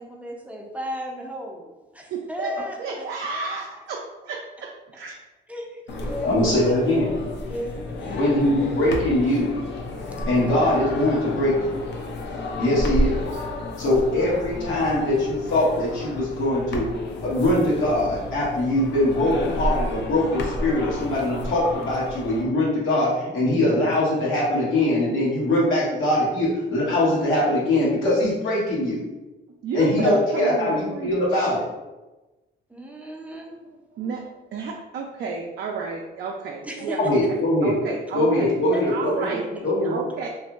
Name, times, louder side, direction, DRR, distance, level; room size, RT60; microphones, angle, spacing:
voice 1, 0.0-3.8 5.5-6.6 7.4-8.4 32.7-33.5 36.6-37.0 38.7-39.2, equal, 5° right, 0 dB, 0.5 m, -36 dB
voice 2, 2.1-5.1 29.6-31.5 33.3-38.5 38.9-40.3, right 4 dB, 60° right, -1 dB, 0.4 m, -32 dB
sound 1, 5.9-22.4, left 1 dB, 60° left, 0.5 m, -31 dB
voice 3, 6.2-7.1 8.2-9.5 10.3-11.5 12.6-13.2 13.8-16.9 17.2-29.0 29.7-31.6 37.0-37.7 38.1-39.4 39.6-40.0, left 1 dB, 80° left, -6 dB, 1.1 m, -22 dB
2.8 x 2.6 x 2.3 m, 1.1 s
cardioid pair, 90°, 20 cm